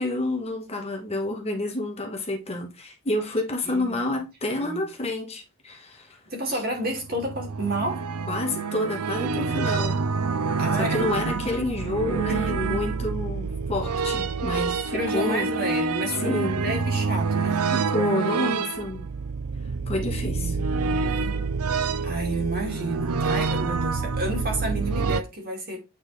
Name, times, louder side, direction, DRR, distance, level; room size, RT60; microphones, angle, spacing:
voice 1, 0.0-6.2 6.5-6.6 8.3-10.0 10.8-15.5 16.1-16.6 17.7-19.1 19.9-20.6, left 2 dB, 25° left, 1.3 m, -29 dB
voice 2, 3.6-4.2 4.5-4.8 6.3-8.1 10.6-11.6 12.3-12.5 12.8-13.0 14.9-16.2 16.5-17.6 20.2-21.4 22.0-25.8, right 1 dB, 45° right, 2.3 m, -31 dB
sound 1, 6.9-25.2, right 4 dB, 85° right, 0.5 m, -27 dB
8.8 x 4.1 x 3.2 m
head